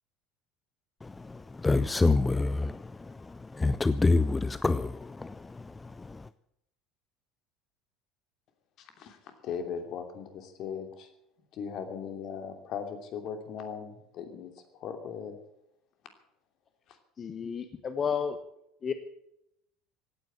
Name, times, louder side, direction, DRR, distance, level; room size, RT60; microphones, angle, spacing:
voice 1, 1.0-6.3, left 3 dB, 15° left, 0.5 m, -28 dB
voice 2, 8.8-11.1 11.5-15.4 16.9-17.0, left 7 dB, 55° left, 2.8 m, -39 dB
voice 3, 17.2-18.4 18.8-18.9, left 7 dB, 35° left, 1.3 m, -31 dB
16.5 x 9.5 x 9.0 m
hypercardioid pair, 70°, 0 cm